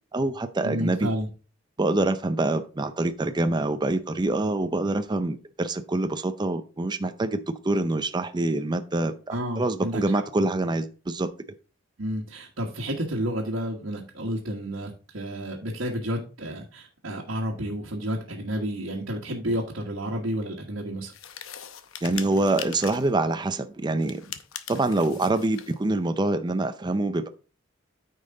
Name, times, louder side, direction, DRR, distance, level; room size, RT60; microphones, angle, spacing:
voice 1, 0.1-1.1 1.8-11.3 22.0-24.2 24.7-27.3, right 2 dB, 20° right, 0.5 m, -25 dB
voice 2, 0.6-1.3 9.3-10.0 10.4-10.5 12.0-21.1, equal, 80° right, 1.6 m, -31 dB
sound 1, 21.1-23.2 24.0-25.8, left 9 dB, 85° left, 0.8 m, -40 dB
9.4 x 5.4 x 3.8 m
head